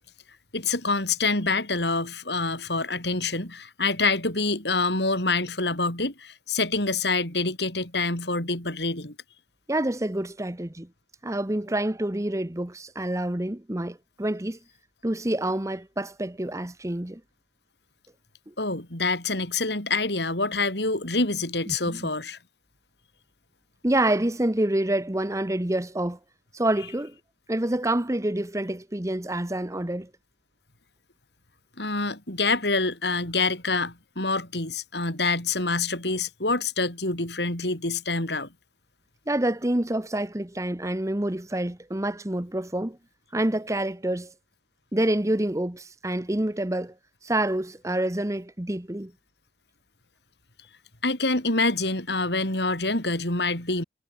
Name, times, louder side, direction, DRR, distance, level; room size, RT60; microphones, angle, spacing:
voice 1, 0.5-9.1 18.6-22.4 31.8-38.5 51.0-53.8, left 3 dB, 65° left, 6.5 m, -26 dB
voice 2, 9.7-10.9 11.2-14.6 15.0-17.2 18.5-18.6 21.7-21.8 22.0-22.1 23.8-26.2 26.5-27.1 27.5-30.1 39.3-43.0 43.3-44.3 44.9-46.9 47.2-49.1, right 1 dB, 15° right, 1.0 m, -27 dB
head